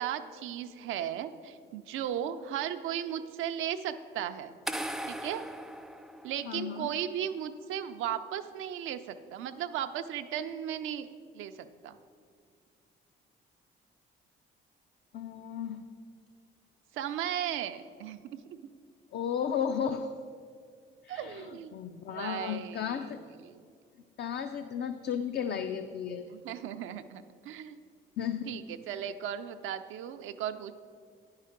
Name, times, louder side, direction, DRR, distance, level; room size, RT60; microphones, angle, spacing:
voice 1, 0.0-4.5 5.1-5.4 6.2-12.0 16.9-18.4 21.1-21.8 22.1-23.6 26.3-27.8 28.5-30.7, right 10 dB, 85° right, 9 dB, 0.5 m, -36 dB
sound 1, 4.7-6.8, right 1 dB, ahead, 0.4 m, -38 dB
voice 2, 6.5-6.9 15.1-15.8 19.1-20.1 21.0-23.2 24.2-26.2 28.2-28.6, left 8 dB, 60° left, 8 dB, 0.4 m, -34 dB
9.7 x 5.6 x 5.0 m, 2.1 s
cardioid pair, 90°, 20 cm